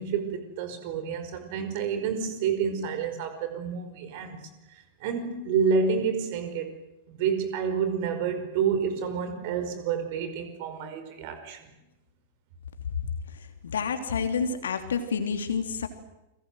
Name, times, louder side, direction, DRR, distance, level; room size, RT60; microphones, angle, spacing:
voice 1, 0.0-6.7 7.1-11.6, right 6 dB, 50° right, 9 dB, 5.0 m, -29 dB
voice 2, 13.6-15.9, left 6 dB, 65° left, 7 dB, 3.3 m, -28 dB
29.5 x 22.5 x 7.9 m, 0.95 s
figure-of-eight pair, 95°, 0 cm